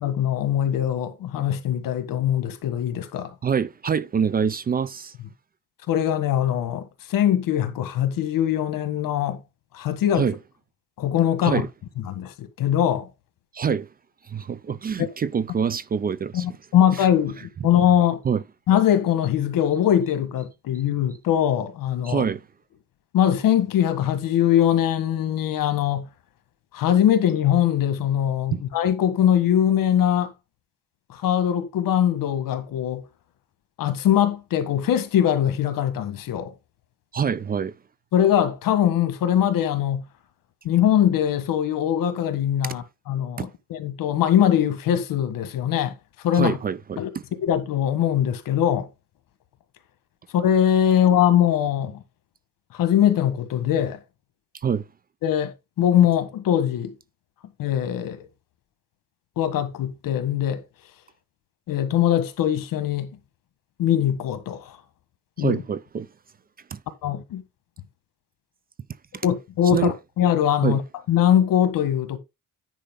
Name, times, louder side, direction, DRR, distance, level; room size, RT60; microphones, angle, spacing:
voice 1, 0.0-3.3 5.9-9.4 9.7-10.3 11.0-11.6 12.1-13.1 15.0-15.1 16.3-18.2 18.7-22.2 23.1-26.1 26.7-30.3 31.1-33.0 33.8-36.5 38.1-40.0 40.6-46.6 47.0-47.1 47.4-48.9 50.3-52.0 52.7-54.0 55.2-56.9 57.6-58.2 59.4-60.6 61.7-63.1 63.8-64.8 65.4-65.6 67.0-67.4 69.2-70.8 71.1-72.2, left 10 dB, 85° left, 1.7 m, -22 dB
voice 2, 3.4-5.1 10.2-10.4 11.4-11.7 13.5-13.9 14.3-16.5 18.2-18.4 22.0-22.4 28.5-28.6 37.1-37.7 43.4-43.5 46.3-47.2 54.6-54.8 65.4-66.1 66.7-66.8 69.1-69.2 69.7-69.9 70.6-70.8, right 7 dB, 30° right, 0.4 m, -25 dB
10.0 x 5.1 x 3.9 m
cardioid pair, 145°, 33 cm